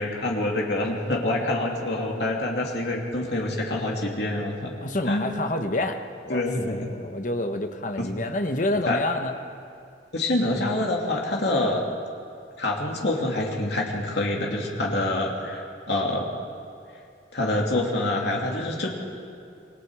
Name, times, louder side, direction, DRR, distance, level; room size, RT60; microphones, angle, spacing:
voice 1, 0.0-4.7 5.1-5.2 6.3-6.9 8.8-9.0 10.1-11.8 12.6-16.3 17.3-18.9, left 2 dB, 60° left, -1 dB, 2.8 m, -26 dB
voice 2, 4.8-9.4, left 1 dB, 40° left, 6 dB, 1.1 m, -28 dB
27.0 x 20.5 x 4.9 m, 2.4 s
head